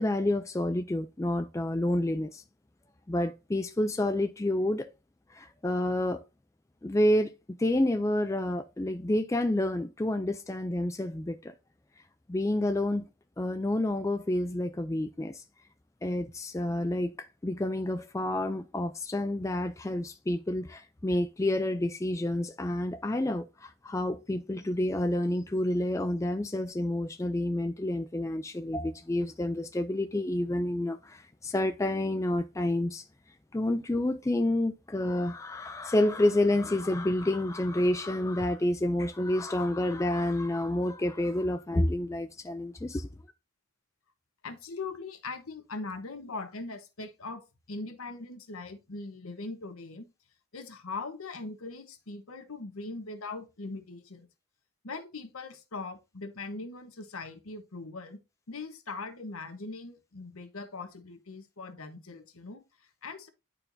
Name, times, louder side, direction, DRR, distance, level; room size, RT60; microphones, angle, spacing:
voice 1, 0.0-2.4 3.1-4.9 5.3-6.2 6.8-11.5 12.3-13.0 13.4-15.4 16.0-33.0 33.5-43.1, left 1 dB, 15° left, 0.3 m, -29 dB
voice 2, 44.4-50.0 50.5-54.3 54.8-58.2 58.5-63.3, left 3 dB, 75° left, 1.1 m, -41 dB
10.5 x 4.4 x 2.7 m
head